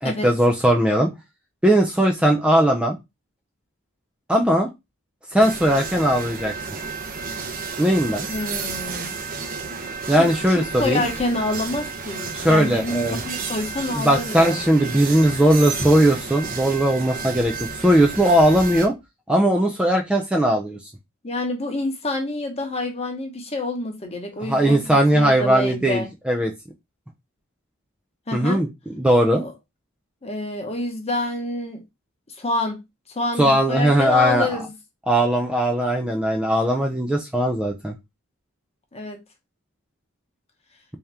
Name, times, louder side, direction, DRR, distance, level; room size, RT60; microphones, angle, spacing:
voice 1, 0.0-1.1 1.6-3.0 4.3-4.7 5.3-6.5 7.8-8.3 10.1-11.1 12.3-13.2 13.9-17.5 17.8-18.9 19.3-20.8 24.4-26.5 28.3-29.4 33.4-34.6 35.1-37.9, right 1 dB, 5° right, 0.4 m, -19 dB
sound 1, 5.4-18.9, right 5 dB, 45° right, 0.7 m, -32 dB
voice 2, 8.3-9.1 10.1-14.6 21.2-26.1 28.3-28.6 29.4-29.5 30.2-31.8 32.4-32.8 33.1-34.7 38.9-39.2, left 2 dB, 30° left, 0.9 m, -27 dB
3.5 x 2.8 x 3.3 m
head